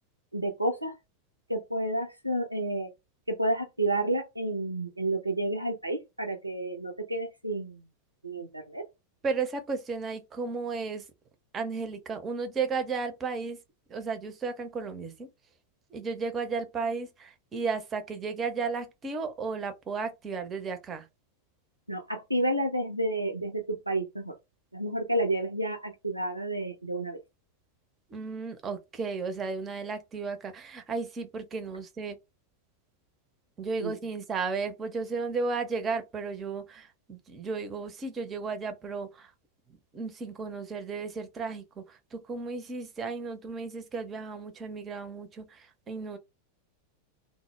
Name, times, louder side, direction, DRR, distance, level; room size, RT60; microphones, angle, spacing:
voice 1, 0.3-0.9 1.5-2.9 3.3-7.8 8.2-8.8 21.9-24.3 24.7-27.2 33.8-33.9, right 1 dB, 85° right, 0.4 m, -30 dB
voice 2, 9.2-11.0 11.5-13.6 13.9-15.3 15.9-21.1 28.1-32.2 33.6-39.3 39.9-46.2, right 4 dB, 25° right, 0.5 m, -34 dB
2.0 x 2.0 x 3.0 m
figure-of-eight pair, 90°, 0 cm